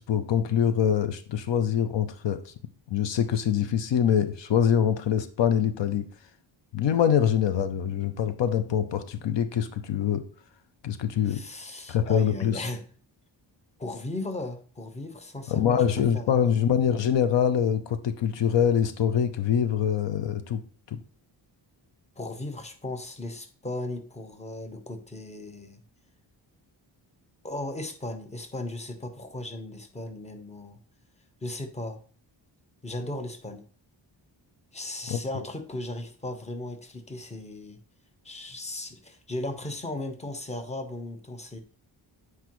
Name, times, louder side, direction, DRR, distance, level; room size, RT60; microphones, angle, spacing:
voice 1, 0.0-2.5 2.9-6.0 6.7-10.2 10.8-11.4 11.9-12.6 15.5-21.0 35.1-35.2, left 8 dB, 75° left, 11 dB, 0.7 m, -24 dB
voice 2, 11.3-12.8 13.8-16.7 22.2-25.8 27.4-30.8 31.4-32.0 32.8-33.7 34.7-37.8 38.2-41.6, left 2 dB, 15° left, 6 dB, 0.8 m, -36 dB
8.1 x 4.7 x 3.1 m, 0.43 s
wide cardioid pair, 125°, 44 cm